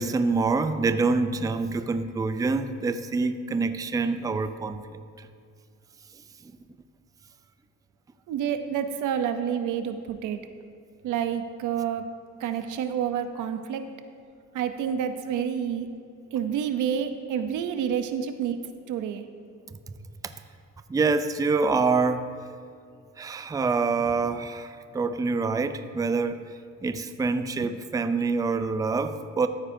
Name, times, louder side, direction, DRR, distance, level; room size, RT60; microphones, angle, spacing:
voice 1, 0.0-4.8 5.2-5.3 6.4-6.5 20.2-20.3 20.9-22.3 23.2-26.5 26.8-29.5, right 4 dB, 10° right, 10 dB, 0.4 m, -26 dB
voice 2, 8.3-10.4 11.0-12.0 12.4-13.8 14.5-15.9 16.3-18.6 18.9-19.2, right 8 dB, 80° right, 9 dB, 0.7 m, -28 dB
13.5 x 9.5 x 2.7 m, 2.3 s
cardioid pair, 90°, 30 cm